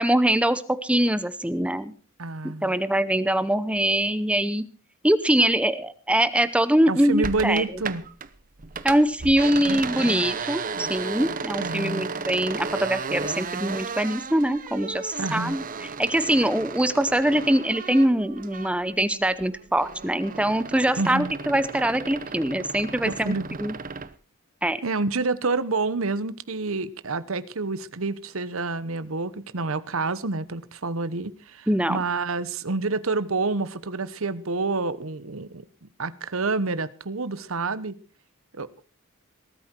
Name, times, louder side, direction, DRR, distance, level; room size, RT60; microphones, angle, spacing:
voice 1, 0.0-1.9 2.4-4.7 5.0-7.6 8.8-23.8 24.6-24.8 31.7-32.0, right 1 dB, 5° right, 0.7 m, -23 dB
voice 2, 2.2-2.7 6.9-8.0 11.6-12.1 15.2-15.6 21.0-21.3 23.0-23.5 24.8-38.0 38.5-38.7, right 3 dB, 70° right, 1.1 m, -28 dB
sound 1, 7.2-8.3 8.6-19.0 19.3-24.1, right 4 dB, 40° right, 0.9 m, -34 dB
19.0 x 13.0 x 4.5 m
head